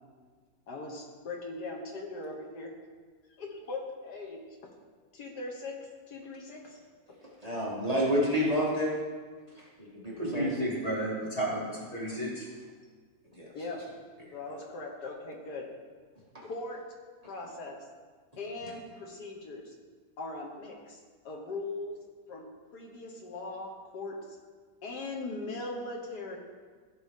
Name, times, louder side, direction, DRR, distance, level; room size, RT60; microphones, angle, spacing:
voice 1, 0.7-2.7 3.4-4.4 5.1-6.7 13.5-13.8 14.3-15.7 16.4-16.8 17.2-17.8 18.4-19.7 20.2-21.0 21.3-24.4 24.8-26.4, left 2 dB, 80° left, 0 dB, 1.7 m, -40 dB
voice 2, 7.4-8.9 9.5-10.5 13.3-13.5 16.3-16.4, equal, 25° right, -6 dB, 1.8 m, -29 dB
voice 3, 10.2-12.5, right 1 dB, 35° left, -5 dB, 2.6 m, -32 dB
14.5 x 6.0 x 3.6 m, 1.5 s
omnidirectional pair, 1.7 m